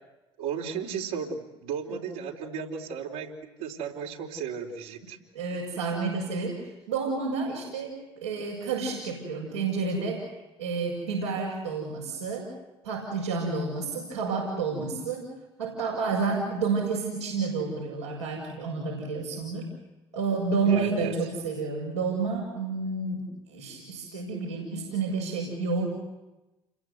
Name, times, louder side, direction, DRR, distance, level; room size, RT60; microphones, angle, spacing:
voice 1, 0.4-5.2 20.7-21.2, right 7 dB, 70° right, 0 dB, 4.2 m, -34 dB
voice 2, 5.3-6.6 6.9-10.2 10.6-12.5 12.8-15.3 15.6-19.7 20.1-25.9, right 4 dB, 85° right, -5 dB, 6.5 m, -30 dB
30.0 x 22.5 x 8.0 m, 1.0 s
figure-of-eight pair, 55°, 14 cm